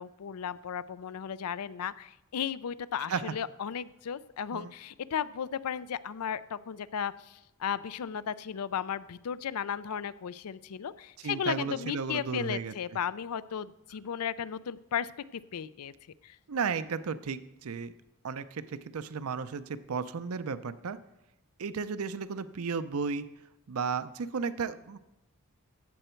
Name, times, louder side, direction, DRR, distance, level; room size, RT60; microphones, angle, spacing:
voice 1, 0.0-15.9 16.2-16.4, left 8 dB, 85° left, 17 dB, 0.4 m, -35 dB
voice 2, 11.2-12.7 16.5-17.9 18.2-21.0 21.6-23.3 23.7-25.0, right 5 dB, 75° right, 13 dB, 0.5 m, -34 dB
15.0 x 7.8 x 4.5 m, 0.89 s
head